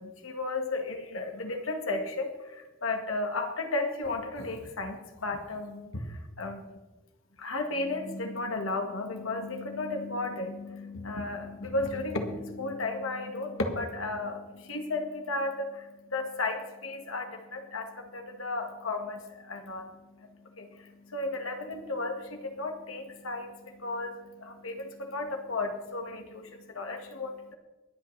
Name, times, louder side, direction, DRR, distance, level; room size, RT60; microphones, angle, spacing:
voice 1, 0.0-6.7 7.4-27.5, left 2 dB, 80° left, 4 dB, 1.7 m, -34 dB
22.5 x 8.9 x 3.3 m, 1.2 s
head